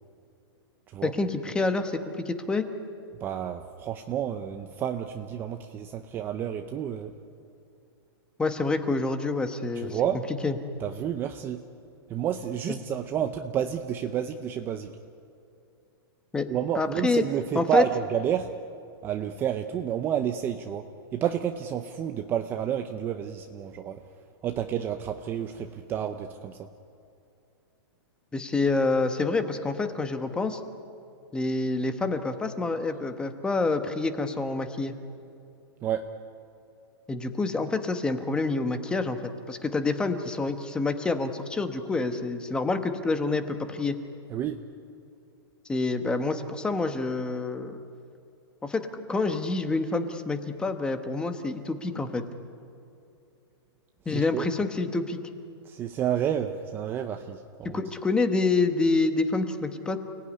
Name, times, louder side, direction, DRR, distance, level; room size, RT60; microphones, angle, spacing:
voice 1, 1.0-2.7 8.4-10.0 10.4-10.6 12.7-12.8 16.3-16.5 16.7-17.2 17.5-17.8 28.3-30.6 31.3-34.9 37.1-39.2 39.5-43.9 45.7-47.8 48.6-52.2 54.1-55.2 57.6-60.0, left 3 dB, 5° left, 8 dB, 1.1 m, -27 dB
voice 2, 3.2-7.1 9.8-10.2 10.8-11.6 12.1-14.9 16.5-18.5 19.0-20.8 21.1-24.0 24.4-26.7 35.8-36.1 44.3-44.6 54.1-54.4 55.6-57.8, right 9 dB, 15° right, 7 dB, 0.7 m, -30 dB
29.5 x 18.5 x 9.8 m, 2.6 s
hypercardioid pair, 170°, 13 cm